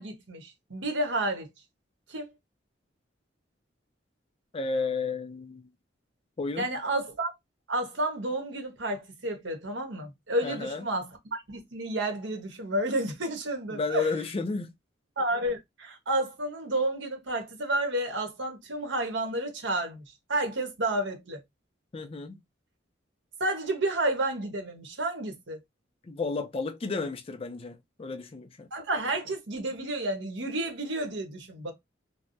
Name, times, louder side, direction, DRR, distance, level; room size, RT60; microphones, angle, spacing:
voice 1, 0.0-1.5 2.1-2.3 6.6-7.3 7.7-14.1 15.2-20.0 20.3-21.4 23.4-25.6 28.7-31.7, right 1 dB, 80° right, 1.1 m, -31 dB
voice 2, 4.5-5.7 6.4-6.7 10.4-10.9 13.7-14.7 21.9-22.4 26.1-28.7, left 4 dB, 30° left, 0.4 m, -32 dB
3.3 x 2.0 x 2.6 m
head